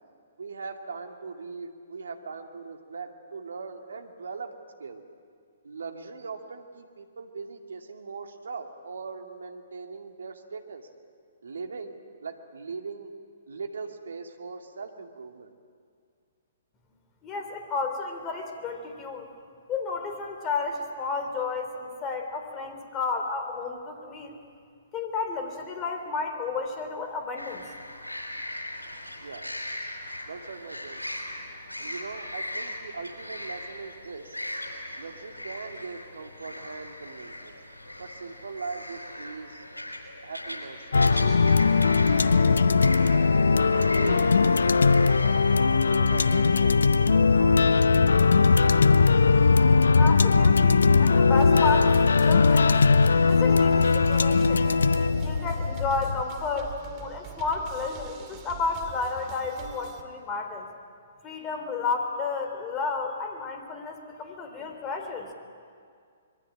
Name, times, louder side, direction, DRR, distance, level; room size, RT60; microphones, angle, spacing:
voice 1, 0.4-4.5 4.8-5.0 5.6-10.9 11.4-11.9 12.2-13.1 13.5-15.5 29.2-29.5 30.3-31.0 31.8-34.4 35.0-37.5 38.0-39.7 40.2-40.8 41.1-42.8 43.6-45.4 45.9-47.9, right 4 dB, 70° right, 4 dB, 2.4 m, -40 dB
voice 2, 17.2-19.3 19.7-24.4 24.9-27.7 50.0-52.9 53.2-54.7 55.2-60.7 61.2-65.3, left 4 dB, 25° left, 5 dB, 3.6 m, -32 dB
sound 1, 27.4-46.8, left 1 dB, 90° left, 4.8 m, -39 dB
sound 2, 40.9-56.2, left 4 dB, 70° left, 0.7 m, -20 dB
sound 3, 51.3-60.0, right 8 dB, 30° right, 2.3 m, -44 dB
25.5 x 22.5 x 8.9 m, 2.2 s
figure-of-eight pair, 120°, 0 cm